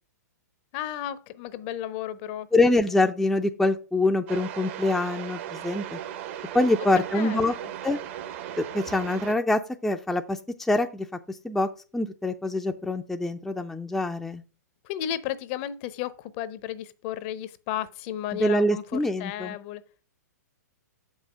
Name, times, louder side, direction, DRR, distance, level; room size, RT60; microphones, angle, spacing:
voice 1, 0.7-2.5 6.9-7.7 14.8-19.8, left 11 dB, 40° left, 0.7 m, -33 dB
voice 2, 2.5-6.0 6.5-7.5 7.8-8.0 8.6-11.1 11.4-14.4 18.4-19.5, left 2 dB, ahead, 0.5 m, -25 dB
sound 1, 4.3-9.3, right 11 dB, 45° right, 0.8 m, -37 dB
7.1 x 5.6 x 4.9 m
hypercardioid pair, 120°, 9 cm